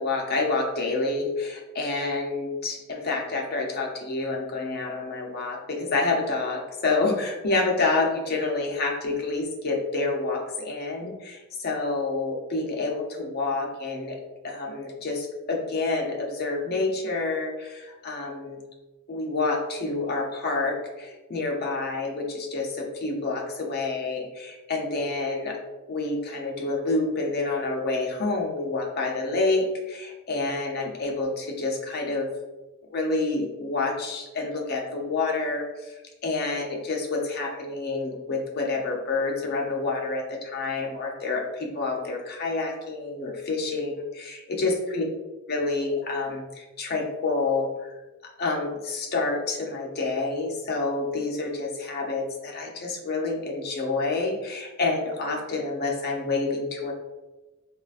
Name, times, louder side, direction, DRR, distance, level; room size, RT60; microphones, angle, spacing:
voice 1, 0.0-14.2 14.4-18.6 19.1-25.6 25.9-32.3 32.9-35.9 36.2-45.0 45.5-48.0 48.2-56.9, left 3 dB, 45° left, 1 dB, 0.5 m, -28 dB
3.7 x 2.4 x 2.4 m, 1.1 s
head